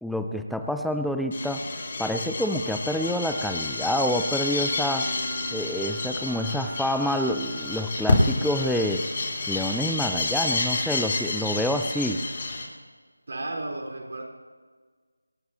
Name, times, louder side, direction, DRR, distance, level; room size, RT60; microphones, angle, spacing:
voice 1, 0.0-1.6 2.0-5.1 5.5-9.1 9.5-12.2, equal, ahead, 6 dB, 0.4 m, -27 dB
sound 1, 1.3-12.6, left 2 dB, 35° left, 4.0 m, -29 dB
sound 2, 3.0-8.9, right 4 dB, 20° right, 3.5 m, -47 dB
voice 2, 13.3-14.2, right 2 dB, 50° right, -1 dB, 4.1 m, -33 dB
26.0 x 11.5 x 3.0 m, 1.5 s
figure-of-eight pair, 165°, 0 cm